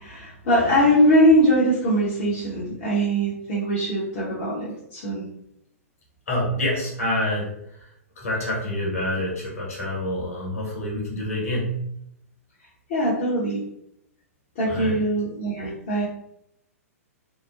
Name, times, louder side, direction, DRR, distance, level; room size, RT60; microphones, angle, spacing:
voice 1, 0.0-5.2 12.9-13.6 14.6-16.1, equal, 45° left, -7 dB, 0.8 m, -21 dB
voice 2, 6.3-7.5 8.2-11.7 14.7-15.0, left 1 dB, 70° left, -4 dB, 1.2 m, -27 dB
2.8 x 2.0 x 2.4 m, 0.77 s
figure-of-eight pair, 110°, 8 cm